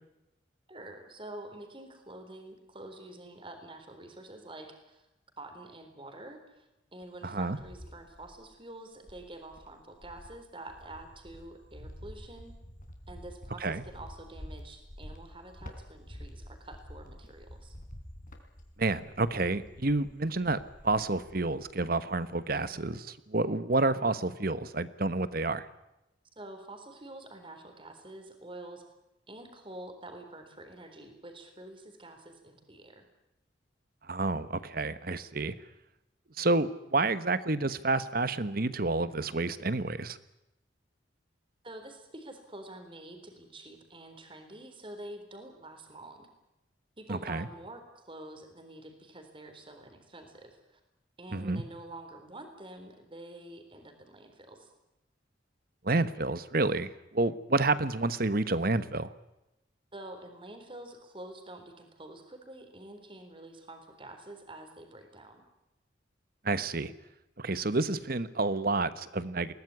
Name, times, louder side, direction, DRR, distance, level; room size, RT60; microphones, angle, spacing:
voice 1, 0.7-5.0 5.4-12.6 13.1-17.8 26.4-28.8 29.3-33.0 41.6-46.3 47.0-50.8 51.2-54.7 59.9-65.4, right 1 dB, 25° right, 5 dB, 4.0 m, -47 dB
Cricket, 7.0-8.5 9.0-22.0 22.3-22.8, equal, 45° left, 3.8 m, -49 dB
voice 2, 7.2-7.6 13.6-13.8 18.8-25.7 34.1-35.5 36.4-40.2 47.1-47.5 51.3-51.6 55.8-59.1 66.4-66.9 67.4-69.5, right 2 dB, 50° right, 14 dB, 1.2 m, -29 dB
21.5 x 18.5 x 9.7 m, 0.92 s
head